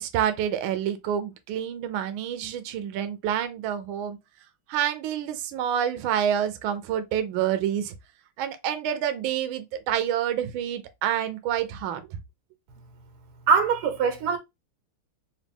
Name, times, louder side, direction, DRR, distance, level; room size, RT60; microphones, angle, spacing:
voice 1, 0.0-4.2 4.7-7.9 8.4-12.0, right 10 dB, 75° right, 1.4 m, -28 dB
voice 2, 13.5-14.4, right 5 dB, 90° right, 1.8 m, -22 dB
4.0 x 2.6 x 3.4 m
omnidirectional pair, 2.4 m